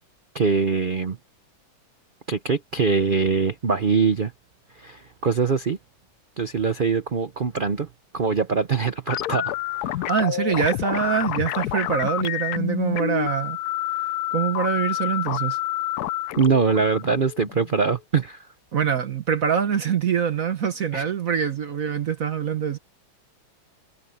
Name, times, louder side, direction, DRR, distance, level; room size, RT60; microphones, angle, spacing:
voice 1, 0.3-1.2 2.3-4.3 4.8-5.8 6.4-7.9 8.1-10.1 16.4-18.4 20.9-21.0, right 5 dB, 85° right, 0.4 m, -23 dB
sound 1, 9.1-18.0, left 14 dB, 70° left, 0.9 m, -28 dB
voice 2, 10.0-13.6 14.0-15.6 18.7-22.8, right 7 dB, 50° right, 1.3 m, -24 dB
omnidirectional pair, 2.1 m